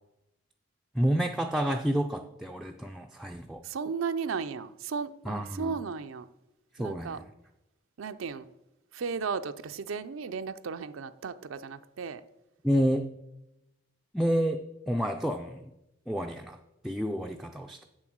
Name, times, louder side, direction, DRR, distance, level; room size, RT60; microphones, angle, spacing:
voice 1, 0.9-3.6 5.3-5.7 6.7-7.2 12.6-13.1 14.1-15.7 16.1-16.6 16.8-17.9, equal, ahead, 0.3 m, -29 dB
voice 2, 3.6-6.3 6.8-7.2 8.0-8.5 8.9-12.2, right 5 dB, 90° right, 0.5 m, -35 dB
7.7 x 7.4 x 6.1 m
head